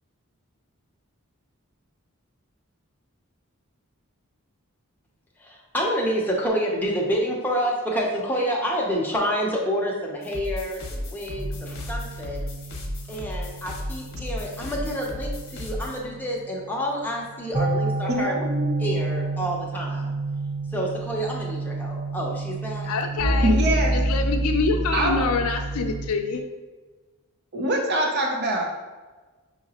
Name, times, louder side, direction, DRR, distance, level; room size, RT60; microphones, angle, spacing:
voice 1, 5.4-12.5 13.1-18.3 18.8-20.1 20.7-22.9 23.5-23.7, equal, 10° left, -3 dB, 0.7 m, -28 dB
sound 1, 10.2-16.0, left 1 dB, 60° left, 0.9 m, -34 dB
sound 2, 11.4-26.1, right 2 dB, 25° right, 1.0 m, -29 dB
voice 2, 18.2-18.7 23.4-23.9 24.9-25.2 27.5-28.6, right 1 dB, 50° right, 0 dB, 0.6 m, -24 dB
voice 3, 22.9-23.6 23.9-26.4, left 4 dB, 85° left, 4 dB, 0.4 m, -26 dB
5.7 x 2.9 x 2.9 m, 1.3 s
head